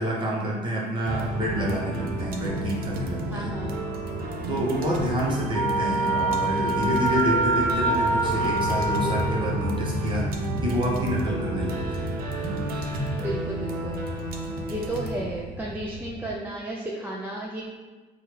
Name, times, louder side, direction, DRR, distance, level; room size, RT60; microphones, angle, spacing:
voice 1, 0.0-3.5 4.5-12.1, equal, 30° right, -4 dB, 1.0 m, -28 dB
sound 1, 1.1-16.4, right 1 dB, 60° right, 0.5 m, -30 dB
voice 2, 3.3-3.7 13.2-14.0 14.7-17.7, right 1 dB, 10° right, -4 dB, 0.4 m, -33 dB
Wind instrument woodwind instrument, 5.5-9.7, right 2 dB, 15° left, 0.9 m, -25 dB
4.4 x 2.4 x 3.1 m, 1.3 s
cardioid pair, 110°, 17 cm